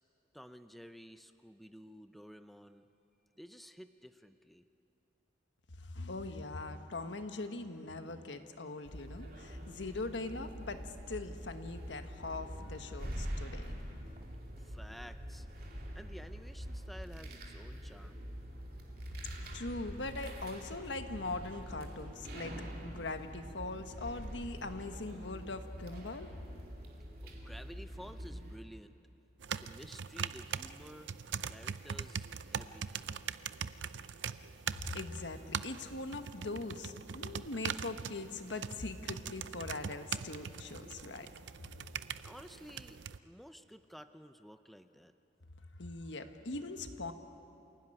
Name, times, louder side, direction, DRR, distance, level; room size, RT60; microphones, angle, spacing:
voice 1, 0.3-2.9 3.4-4.6 14.6-18.3 27.2-28.9 29.6-33.1 41.2-41.3 42.1-45.1, equal, ahead, 9 dB, 0.6 m, -53 dB
voice 2, 5.8-13.8 19.2-22.6 22.8-26.3 34.9-41.3 45.8-47.1, left 2 dB, 80° left, 7 dB, 1.4 m, -41 dB
sound 1, 8.8-28.6, equal, 55° right, 2.6 m, -45 dB
sound 2, 29.4-43.2, right 7 dB, 80° right, 0.6 m, -42 dB
27.5 x 17.0 x 10.0 m, 3.0 s
head